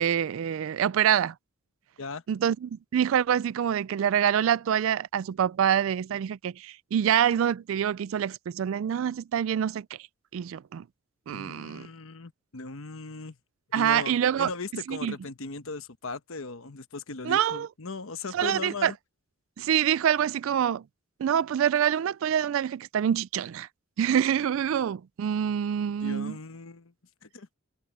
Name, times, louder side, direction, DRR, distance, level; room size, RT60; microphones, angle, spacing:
voice 1, 0.0-1.3 2.3-9.9 10.3-10.8 11.3-11.9 13.7-14.5 14.9-15.2 17.2-17.7 18.3-18.9 19.6-20.8 21.2-23.7 24.0-26.4, right 9 dB, 70° right, 0.3 m, -26 dB
voice 2, 11.3-13.4 13.7-18.9 26.0-26.9 27.2-27.5, left 3 dB, 75° left, 1.1 m, -38 dB
head